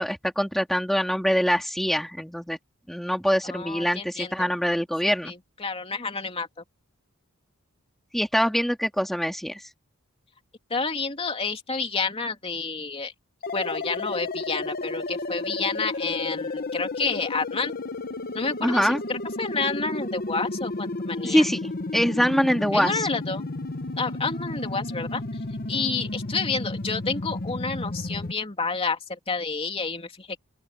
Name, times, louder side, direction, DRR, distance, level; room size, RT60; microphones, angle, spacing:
voice 1, 0.0-2.6 2.9-5.3 8.1-9.6 18.6-19.0 21.2-23.1, equal, ahead, 2.2 m, -24 dB
voice 2, 3.4-4.5 5.0-6.5 10.7-13.1 13.5-17.7 18.3-21.4 22.7-23.4 24.0-25.2 25.7-30.4, left 4 dB, 25° left, 2.9 m, -30 dB
sound 1, 13.4-28.3, left 2 dB, 45° left, 1.0 m, -32 dB
open air
head